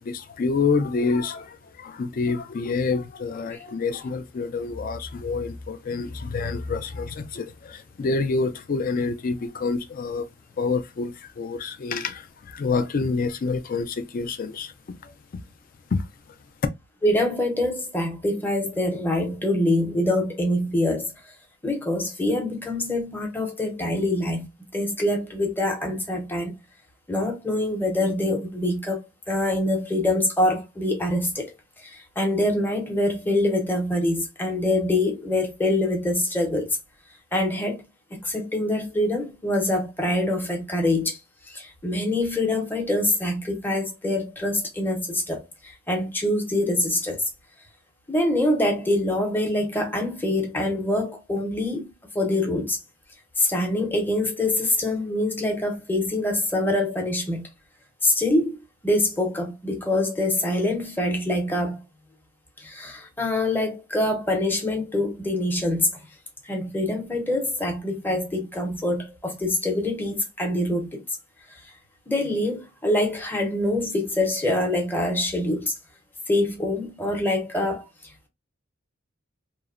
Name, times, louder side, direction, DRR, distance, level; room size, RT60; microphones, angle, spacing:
voice 1, 0.0-10.3 10.6-14.7 15.0-15.1 15.9-16.0, left 4 dB, 45° left, 0.4 m, -27 dB
voice 2, 17.0-21.1 21.6-24.5 24.7-26.6 27.1-31.5 31.8-36.8 37.3-37.8 38.1-41.2 41.5-47.2 48.1-51.9 52.1-52.8 53.4-57.5 58.0-58.6 58.8-61.8 62.6-65.9 66.4-71.0 72.1-75.7 76.3-77.8, left 1 dB, 10° left, 0.7 m, -25 dB
2.8 x 2.1 x 2.4 m
head